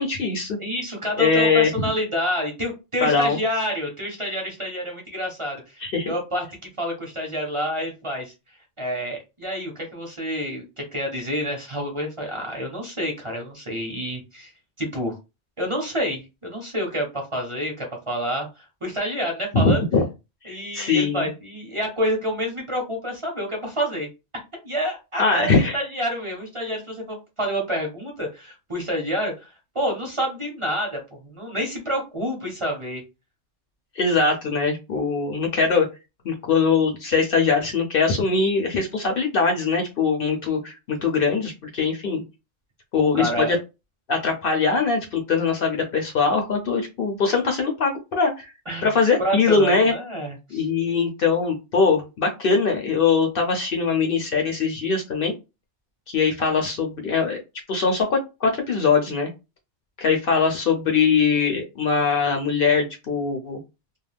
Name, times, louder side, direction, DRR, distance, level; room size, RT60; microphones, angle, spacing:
voice 1, 0.0-0.6 1.2-1.7 3.0-3.4 5.8-6.1 19.6-20.0 20.4-21.3 25.2-25.7 34.0-35.9 36.2-42.2 42.9-43.6 44.1-48.5 48.8-49.9 50.5-55.3 56.1-57.4 57.7-59.3 60.0-63.6, left 4 dB, 60° left, 3 dB, 0.7 m, -22 dB
voice 2, 0.6-6.4 6.8-8.3 8.8-14.5 14.8-15.2 15.6-19.8 20.4-24.1 24.6-29.5 29.7-33.0 43.0-43.6 48.7-48.9 49.2-50.7, equal, 30° right, 0 dB, 0.7 m, -28 dB
2.3 x 2.2 x 3.2 m, 0.26 s
omnidirectional pair, 1.2 m